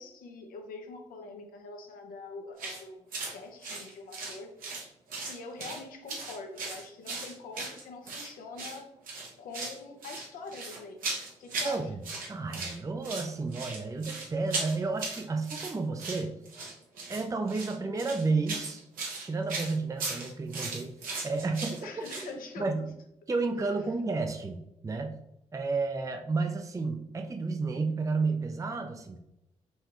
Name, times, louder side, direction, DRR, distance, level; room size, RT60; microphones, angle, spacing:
voice 1, 0.0-4.5 5.2-8.9 9.4-11.0 11.4-11.8 21.8-22.9, left 3 dB, 75° left, 4 dB, 0.7 m, -44 dB
sound 1, 2.6-2.8 3.1-3.3 3.6-4.8 5.1-5.8 6.1-8.3 8.6-8.8 9.1-9.8 10.0-11.8 12.0-12.8 13.0-22.3, right 3 dB, 75° right, 1.1 m, -37 dB
voice 2, 11.6-16.3 17.1-18.8 19.2-20.9 21.2-21.9 22.6-22.9 23.3-25.2 25.5-29.2, right 3 dB, 20° right, 5 dB, 0.5 m, -31 dB
5.5 x 2.3 x 3.0 m, 0.82 s
supercardioid pair, 50°, 14 cm